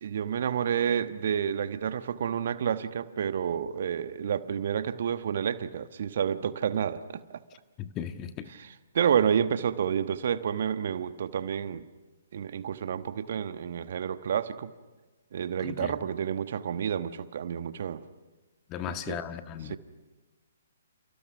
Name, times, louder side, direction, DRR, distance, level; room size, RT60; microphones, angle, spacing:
voice 1, 0.0-7.2 8.5-11.9 12.3-14.7 15.3-18.0 18.8-19.2 19.6-19.8, right 8 dB, 50° right, 1.2 m, -29 dB
voice 2, 7.8-8.5 15.6-15.9 18.7-19.8, left 9 dB, 25° left, 1.5 m, -36 dB
30.0 x 29.5 x 6.1 m
figure-of-eight pair, 125°, 0 cm